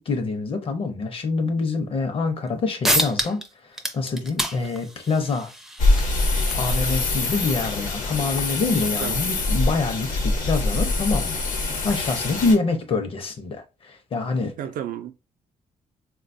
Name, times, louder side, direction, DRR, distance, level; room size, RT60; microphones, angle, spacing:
voice 1, 0.0-5.5 6.5-14.5, left 3 dB, 45° left, 0.6 m, -26 dB
sound 1, 2.5-2.6 2.8-3.5 3.7-8.9, right 1 dB, 5° right, 0.4 m, -30 dB
sound 2, 5.8-12.6, left 2 dB, 70° left, 0.9 m, -24 dB
voice 2, 9.0-9.3 14.6-15.1, right 10 dB, 80° right, 0.4 m, -32 dB
3.9 x 2.3 x 2.6 m
wide cardioid pair, 165°, 14 cm